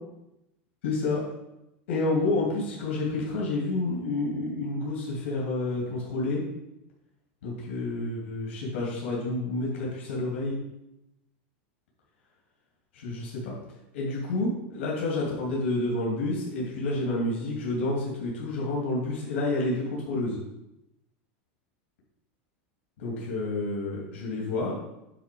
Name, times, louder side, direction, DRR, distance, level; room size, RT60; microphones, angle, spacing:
voice 1, 0.8-1.2 1.9-6.4 7.4-10.6 12.9-13.6 13.9-20.4 23.0-24.8, left 2 dB, 85° left, -4 dB, 2.7 m, -29 dB
9.0 x 4.0 x 5.4 m, 0.89 s
supercardioid pair, 165°, 6 cm